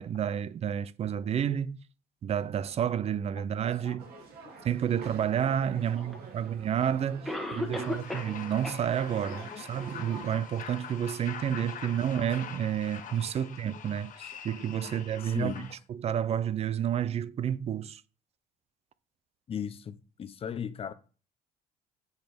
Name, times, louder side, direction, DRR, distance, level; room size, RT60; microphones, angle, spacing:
voice 1, 0.0-1.8 2.2-4.1 4.6-15.7 16.0-18.0, right 9 dB, 40° right, 0.4 m, -30 dB
voice 2, 3.4-4.7 5.6-6.2 7.7-8.0 9.3-9.6 10.1-10.3 13.7-13.8 14.2-14.4 14.8-14.9 15.2-15.7 19.5-20.9, left 8 dB, 35° left, 0.5 m, -40 dB
sound 1, 4.0-10.3, right 4 dB, 65° right, 1.6 m, -48 dB
Cough, 6.1-6.2 7.2-8.4 8.6-8.8 9.3-9.4 10.0-10.1, left 1 dB, ahead, 1.2 m, -34 dB
sound 2, 7.7-15.7, left 8 dB, 50° left, 0.9 m, -44 dB
8.1 x 2.8 x 5.1 m
cardioid pair, 110°, 17 cm